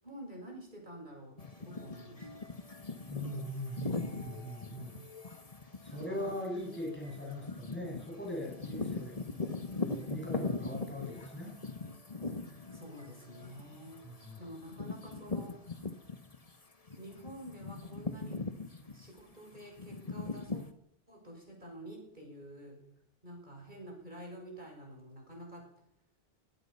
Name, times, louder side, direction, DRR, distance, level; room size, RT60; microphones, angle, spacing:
voice 1, 0.0-2.4 5.9-6.4 12.7-15.8 17.0-18.4 18.9-20.6 21.1-22.9 23.2-25.7, right 1 dB, 50° right, 1 dB, 6.6 m, -49 dB
sound 1, 1.4-16.5 16.9-20.7, left 3 dB, 35° left, 1.7 m, -41 dB
voice 2, 3.1-5.0 5.8-9.4 9.8-11.6 14.0-14.4, equal, 10° left, -1 dB, 7.3 m, -40 dB
23.5 x 20.0 x 5.7 m, 0.76 s
omnidirectional pair, 1.0 m